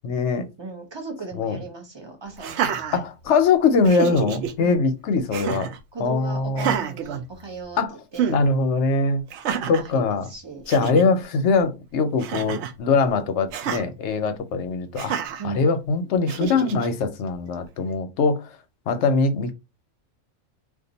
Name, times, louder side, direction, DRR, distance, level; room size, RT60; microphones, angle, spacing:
voice 1, 0.0-0.5 1.3-1.6 2.9-5.7 6.0-6.8 7.8-7.9 8.3-9.2 9.7-10.3 10.7-15.1 15.4-18.5 18.9-19.5, left 4 dB, 65° left, 0.9 m, -22 dB
voice 2, 0.6-2.5 2.9-3.0 4.6-4.8 5.9-8.4 9.5-10.7 15.4-15.6, right 4 dB, 25° right, 0.9 m, -37 dB
Laughter, 2.4-3.5 3.8-4.5 5.3-5.8 6.5-7.8 8.1-8.4 9.3-9.9 10.4-10.5 10.7-11.1 12.2-12.8 13.5-13.8 15.0-15.4 16.3-16.9, right 8 dB, 65° right, 0.8 m, -28 dB
2.6 x 2.5 x 3.9 m
omnidirectional pair, 1.4 m